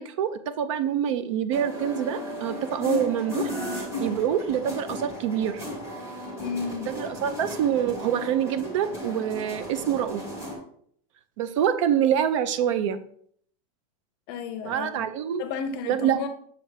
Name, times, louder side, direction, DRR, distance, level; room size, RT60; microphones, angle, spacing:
voice 1, 0.0-5.6 6.9-10.3 11.4-13.0 14.6-15.4 15.9-16.2, right 9 dB, 50° right, 12 dB, 0.6 m, -26 dB
sound 1, 1.5-10.6, left 1 dB, 15° right, 1.7 m, -35 dB
voice 2, 6.4-6.9 14.3-15.1 15.4-16.3, left 5 dB, 40° left, 8 dB, 0.6 m, -32 dB
7.0 x 3.4 x 4.8 m, 0.62 s
supercardioid pair, 170°, 20 cm